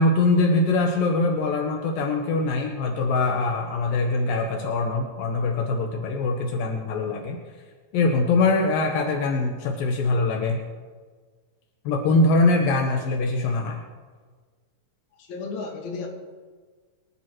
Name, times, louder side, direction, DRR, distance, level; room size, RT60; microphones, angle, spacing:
voice 1, 0.0-7.4 7.9-10.6 11.8-13.8, left 3 dB, 80° left, 2 dB, 2.8 m, -23 dB
voice 2, 15.1-16.1, left 4 dB, 60° left, 1 dB, 3.1 m, -33 dB
23.0 x 11.5 x 3.2 m, 1.5 s
omnidirectional pair, 4.1 m